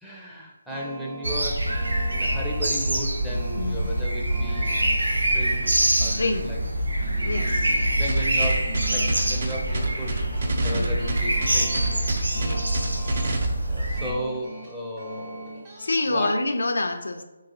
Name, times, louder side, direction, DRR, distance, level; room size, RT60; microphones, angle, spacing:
voice 1, 0.0-1.6 2.1-4.9 5.3-6.6 7.1-10.2 10.6-11.8 13.7-15.6 16.1-16.3, equal, ahead, -5 dB, 0.5 m, -35 dB
sound 1, 0.7-16.2, right 2 dB, 30° right, 0.9 m, -42 dB
sound 2, 1.2-14.1, right 1 dB, 90° right, 0.6 m, -25 dB
voice 2, 3.6-3.9 6.0-6.5 7.2-7.8 10.7-11.1 12.3-13.2 15.8-17.2, left 2 dB, 75° left, 6 dB, 0.4 m, -28 dB
sound 3, 8.1-13.4, right 2 dB, 50° right, 0.5 m, -28 dB
3.7 x 2.9 x 2.9 m, 1.1 s
figure-of-eight pair, 160°, 0 cm